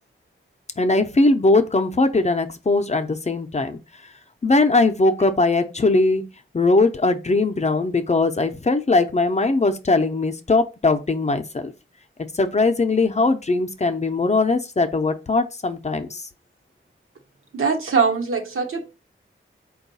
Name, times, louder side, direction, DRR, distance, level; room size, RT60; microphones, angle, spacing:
voice 1, 0.8-3.8 4.4-6.2 6.5-11.7 12.3-16.2, left 3 dB, 30° left, 0.6 m, -20 dB
voice 2, 17.5-18.9, right 5 dB, 80° right, 1.0 m, -22 dB
4.5 x 2.3 x 4.0 m
wide cardioid pair, 110°, 21 cm